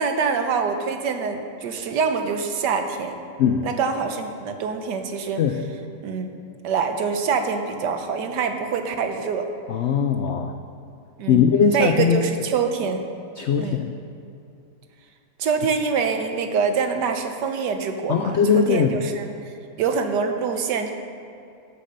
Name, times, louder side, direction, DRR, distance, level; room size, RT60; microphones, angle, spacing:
voice 1, 0.0-3.2 3.6-5.4 6.0-6.4 6.6-9.5 11.2-11.4 11.7-13.0 13.6-13.8 15.4-19.3 19.8-20.9, right 5 dB, 90° right, 6 dB, 1.5 m, -25 dB
voice 2, 9.7-10.5 11.3-12.2 13.4-13.9 18.1-18.9, left 7 dB, 85° left, 6 dB, 0.6 m, -20 dB
10.5 x 7.0 x 6.7 m, 2.6 s
omnidirectional pair, 1.8 m